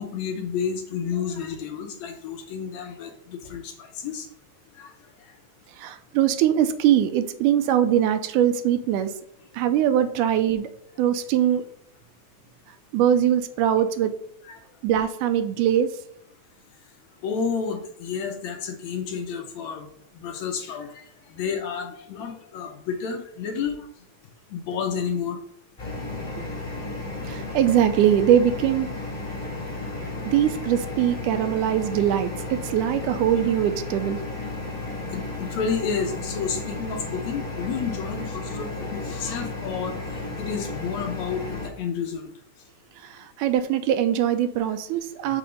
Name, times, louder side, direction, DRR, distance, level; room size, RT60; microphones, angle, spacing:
voice 1, 0.0-4.3 4.8-4.9 5.2-5.3 14.5-14.6 17.2-19.9 20.1-23.9 24.5-25.4 34.9-40.0 40.4-42.3, left 6 dB, 70° left, 3 dB, 2.0 m, -31 dB
voice 2, 5.8-9.1 9.5-10.7 11.0-11.6 12.9-14.1 14.8-15.9 26.4-26.5 27.3-28.9 30.3-34.2 43.0-45.4, right 10 dB, 85° right, 10 dB, 2.0 m, -22 dB
sound 1, 25.8-41.7, left 2 dB, 15° left, 1.9 m, -33 dB
6.0 x 3.5 x 5.0 m, 0.71 s
omnidirectional pair, 3.6 m